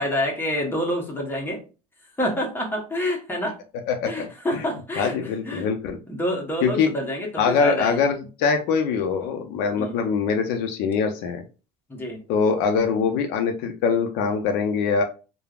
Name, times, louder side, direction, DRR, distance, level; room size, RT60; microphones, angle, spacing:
voice 1, 0.0-1.6 2.0-3.6 4.0-5.7 6.1-8.0 9.8-10.0 11.9-12.2, equal, 15° left, 0 dB, 0.9 m, -28 dB
voice 2, 3.9-4.3 5.0-6.0 6.6-6.9 7.4-11.4 12.3-15.0, left 5 dB, 75° left, 5 dB, 0.5 m, -23 dB
3.3 x 2.0 x 2.3 m, 0.33 s
supercardioid pair, 100°, 17 cm